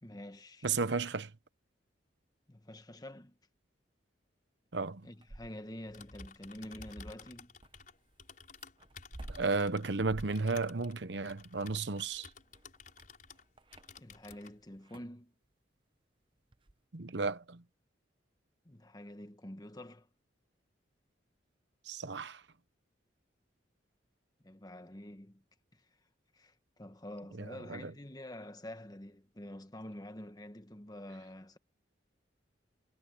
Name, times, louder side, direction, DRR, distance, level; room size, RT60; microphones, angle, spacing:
voice 1, 0.0-0.7 2.5-3.4 5.0-7.6 13.9-15.3 18.6-20.1 24.4-25.4 25.7-25.9 26.3-31.6, left 1 dB, 20° left, 1.3 m, -47 dB
voice 2, 0.6-1.3 4.7-5.1 9.3-12.3 16.9-17.6 21.8-22.4 27.4-27.9, right 4 dB, 65° right, 0.9 m, -34 dB
sound 1, 5.0-5.9 7.6-14.5 14.8-15.2 16.5-16.8, right 1 dB, 25° right, 0.7 m, -52 dB
Typing, 5.8-13.5 13.7-14.5, left 4 dB, 45° left, 5.4 m, -53 dB
head